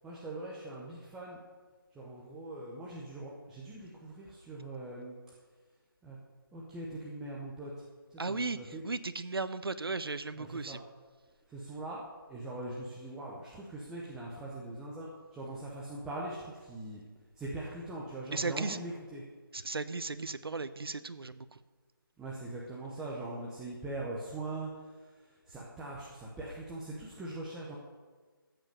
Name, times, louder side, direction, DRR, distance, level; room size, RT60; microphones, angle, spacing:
voice 1, 0.0-1.4 1.9-5.2 6.0-6.2 6.5-7.7 8.1-8.8 10.4-10.8 11.5-12.0 12.3-17.0 17.4-19.2 22.2-27.8, right 2 dB, 5° right, -5 dB, 0.8 m, -42 dB
voice 2, 8.2-10.8 18.3-18.8 19.5-21.6, right 3 dB, 80° right, 12 dB, 0.9 m, -36 dB
14.0 x 8.0 x 6.8 m, 1.4 s
figure-of-eight pair, 165°, 12 cm